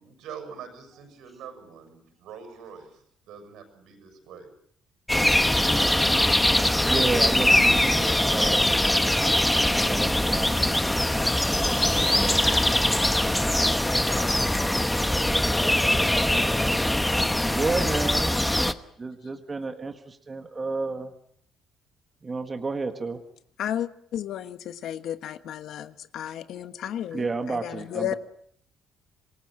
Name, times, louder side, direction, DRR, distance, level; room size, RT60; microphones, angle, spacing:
voice 1, 0.0-4.5, right 7 dB, 75° right, 7 dB, 6.9 m, -44 dB
sound 1, 5.1-18.7, left 1 dB, 5° left, 1.0 m, -22 dB
voice 2, 6.9-8.8 9.8-10.6 12.1-12.4 17.5-18.3 19.0-21.1 22.2-23.2 26.6-26.7 27.1-28.1, right 3 dB, 20° right, 6 dB, 1.7 m, -31 dB
voice 3, 23.6-28.1, left 11 dB, 65° left, 11 dB, 1.3 m, -33 dB
27.5 x 20.0 x 7.6 m, 0.66 s
cardioid pair, 150°, 0 cm